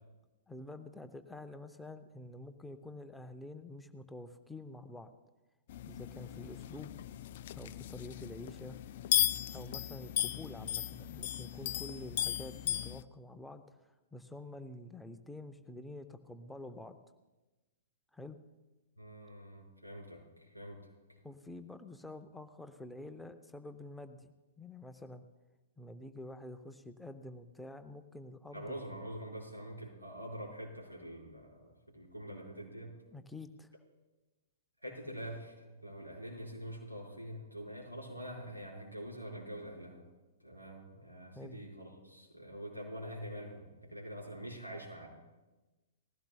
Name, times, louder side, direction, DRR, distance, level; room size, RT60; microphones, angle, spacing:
voice 1, 0.5-5.1 5.9-6.9 7.5-8.8 9.5-17.0 18.1-18.4 21.2-25.2 25.8-28.8 33.1-33.7 41.3-41.6, left 2 dB, 5° left, 9 dB, 0.6 m, -48 dB
sound 1, 5.7-13.0, left 12 dB, 45° left, 0.4 m, -36 dB
voice 2, 19.0-21.2 28.5-33.0 34.8-40.0 40.4-45.1, equal, 90° right, -3 dB, 5.2 m, -45 dB
19.5 x 16.0 x 2.3 m, 1.1 s
figure-of-eight pair, 110°, 0 cm